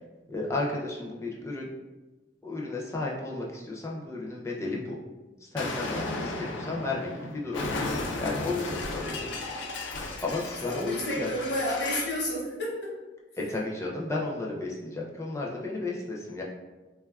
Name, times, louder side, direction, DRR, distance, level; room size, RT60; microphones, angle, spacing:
voice 1, 0.3-1.7 2.4-5.0 5.4-7.6 8.2-9.3 10.2-11.3 13.4-16.4, left 2 dB, 15° left, -3 dB, 0.4 m, -33 dB
Explosion, 5.6-12.2, left 2 dB, 90° left, 0.3 m, -34 dB
voice 2, 10.6-12.9, left 1 dB, 65° left, -4 dB, 0.8 m, -30 dB
3.4 x 2.3 x 2.3 m, 1.2 s
head